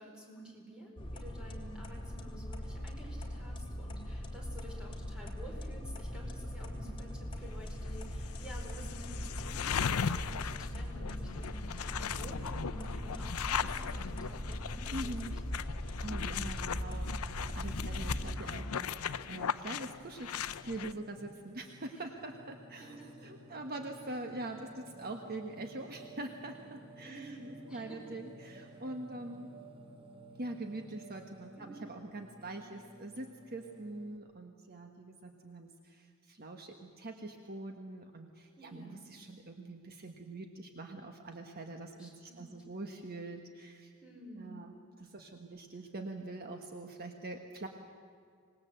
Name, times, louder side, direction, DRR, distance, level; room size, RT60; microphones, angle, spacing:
voice 1, 0.0-15.2 15.7-15.9 17.9-18.2 21.9-22.0 22.8-23.1 27.0-28.0 31.5-31.8 38.6-39.1 41.9-42.5 44.0-44.6, right 1 dB, 5° right, -1 dB, 4.7 m, -51 dB
sound 1, 1.0-18.4, equal, 25° left, 2.7 m, -40 dB
sound 2, 7.8-7.9 8.3-20.9, left 7 dB, 75° left, 0.6 m, -38 dB
voice 2, 14.9-15.4 16.0-20.3 20.6-27.4 27.7-29.5 30.4-43.9 44.3-47.7, right 2 dB, 45° right, 4 dB, 1.3 m, -44 dB
Singing, 17.1-34.2, right 1 dB, 25° right, 1.7 m, -55 dB
25.5 x 19.5 x 7.7 m, 2.2 s
head